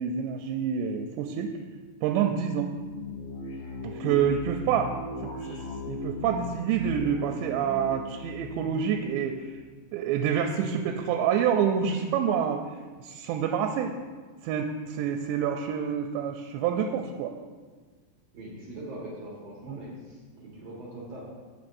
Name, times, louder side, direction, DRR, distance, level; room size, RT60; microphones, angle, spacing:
voice 1, 0.0-1.5 2.0-2.7 3.8-4.9 5.2-5.6 5.9-9.6 9.9-12.6 13.0-13.9 14.4-17.3 19.7-19.8, right 8 dB, 85° right, 4 dB, 2.7 m, -27 dB
sound 1, 2.6-9.8, left 1 dB, 50° left, 2.3 m, -38 dB
voice 2, 18.3-21.2, right 1 dB, 65° right, -4 dB, 1.7 m, -42 dB
15.5 x 5.6 x 2.6 m, 1.4 s
omnidirectional pair, 5.0 m